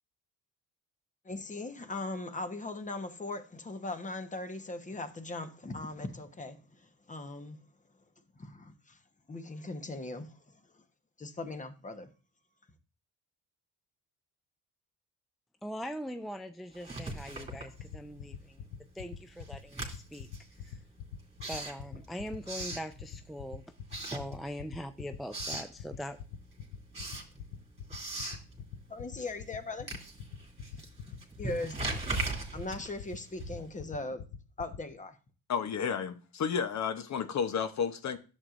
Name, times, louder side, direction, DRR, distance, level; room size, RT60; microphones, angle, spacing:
voice 1, 1.2-7.6 8.4-9.0 9.3-10.4 11.2-12.1 28.9-29.9 31.4-31.8 32.5-34.3 34.6-35.2, left 2 dB, 20° left, 1.1 m, -39 dB
voice 2, 15.6-18.6 18.9-20.3 20.6-20.8 21.5-23.6 24.0-26.2, equal, ahead, 0.4 m, -41 dB
Writing, 16.7-18.3 18.6-23.4 23.8-24.8 25.1-25.8 26.2-33.8, right 2 dB, 15° right, 2.6 m, -40 dB
sound 1, 17.4-34.8, left 8 dB, 80° left, 0.9 m, -42 dB
voice 3, 35.5-38.2, left 7 dB, 50° left, 0.9 m, -32 dB
11.0 x 7.5 x 2.5 m
cardioid pair, 95°, 35 cm